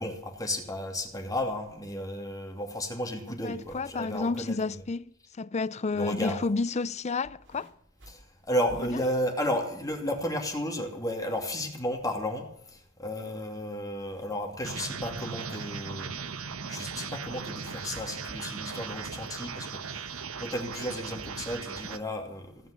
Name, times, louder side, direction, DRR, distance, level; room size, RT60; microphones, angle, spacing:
voice 1, 0.0-4.6 5.9-6.4 8.1-16.1 16.6-22.5, left 1 dB, 15° left, 2.7 m, -33 dB
voice 2, 3.4-7.7 8.8-8.9, left 3 dB, 35° left, 0.5 m, -31 dB
sound 1, 7.2-10.1 10.4-10.9 11.6-11.7, right 1 dB, 60° right, 3.0 m, -52 dB
sound 2, 14.6-22.0, right 5 dB, 90° right, 1.2 m, -38 dB
16.5 x 9.4 x 8.3 m
head